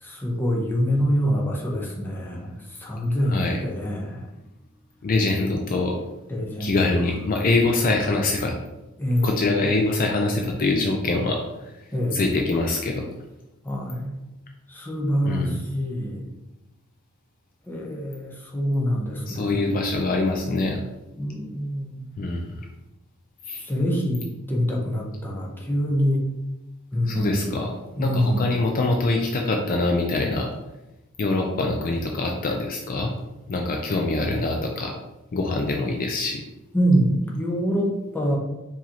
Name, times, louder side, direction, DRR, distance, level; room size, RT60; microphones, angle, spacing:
voice 1, 0.0-4.3 6.3-6.9 9.0-9.4 11.9-12.2 13.6-14.2 14.7-16.3 17.7-19.6 21.2-22.2 23.6-26.3 26.9-27.6 28.0-28.5 36.7-38.4, equal, 10° left, -2 dB, 0.7 m, -25 dB
voice 2, 3.3-3.6 5.0-6.0 6.6-8.5 9.2-11.7 12.1-13.1 15.2-15.6 19.3-20.8 22.2-22.6 23.5-23.7 27.1-30.5 31.2-33.1 33.5-34.9 35.3-36.4, left 2 dB, 40° left, 2 dB, 0.4 m, -24 dB
4.7 x 2.8 x 2.8 m, 0.97 s
head